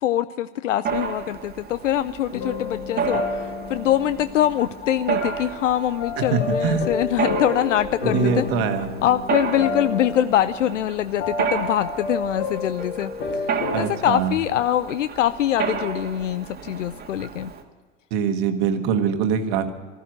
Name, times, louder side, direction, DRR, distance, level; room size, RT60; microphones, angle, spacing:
voice 1, 0.0-8.5 9.0-13.1 13.4-17.5, left 11 dB, 80° left, 14 dB, 0.5 m, -24 dB
Mechanisms, 0.8-17.6, right 7 dB, 25° right, 1.7 m, -32 dB
sound 1, 2.3-13.9, left 4 dB, 60° left, 2.3 m, -30 dB
voice 2, 6.2-6.9 8.0-8.9 13.7-14.3 18.1-19.7, right 6 dB, 55° right, 8 dB, 1.6 m, -23 dB
15.0 x 13.0 x 6.2 m, 1.5 s
hypercardioid pair, 85°, 37 cm